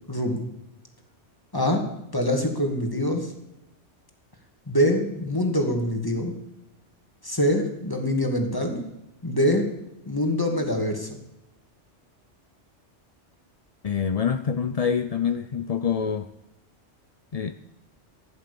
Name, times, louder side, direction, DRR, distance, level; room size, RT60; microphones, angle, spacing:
voice 1, 0.1-0.4 1.5-1.8 2.1-3.3 4.7-6.3 7.2-8.8 9.2-9.7 10.1-11.2, equal, 20° left, 3 dB, 2.3 m, -24 dB
voice 2, 13.8-16.3 17.3-17.5, left 7 dB, 45° left, 9 dB, 0.5 m, -26 dB
16.0 x 11.0 x 6.9 m, 0.93 s
omnidirectional pair, 1.2 m